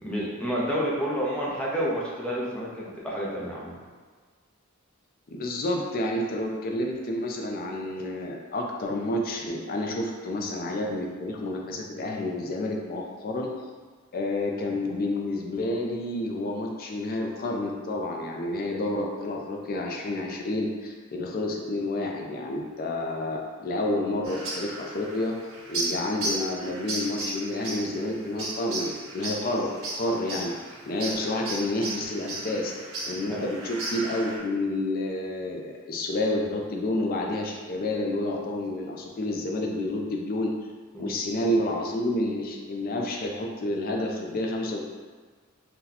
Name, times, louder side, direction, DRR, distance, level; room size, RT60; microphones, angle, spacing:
voice 1, 0.0-3.8 33.3-33.4 40.9-41.1, equal, 5° left, -6 dB, 0.6 m, -29 dB
voice 2, 5.3-13.5 14.1-25.4 25.7-32.7 33.1-40.5 41.0-44.9, left 1 dB, 45° left, 0 dB, 0.4 m, -29 dB
sound 1, 24.2-34.4, right 2 dB, 85° right, 0.9 m, -35 dB
2.8 x 2.2 x 3.9 m, 1.5 s
head